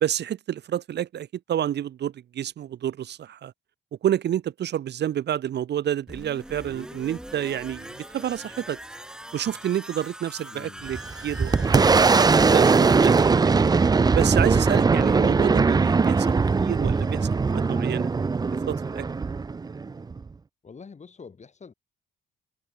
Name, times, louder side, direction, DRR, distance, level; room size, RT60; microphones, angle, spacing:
voice 1, 0.0-3.5 4.0-8.8 9.3-13.6 14.1-18.1 18.7-19.1, right 10 dB, 60° right, 0.9 m, -29 dB
sound 1, 6.1-15.8 16.1-16.2, right 1 dB, 5° right, 1.5 m, -42 dB
voice 2, 10.5-10.9 20.6-21.7, left 5 dB, 35° left, 4.1 m, -45 dB
Boom, 10.9-20.3, right 4 dB, 20° right, 0.5 m, -20 dB
cardioid pair, 90°, 20 cm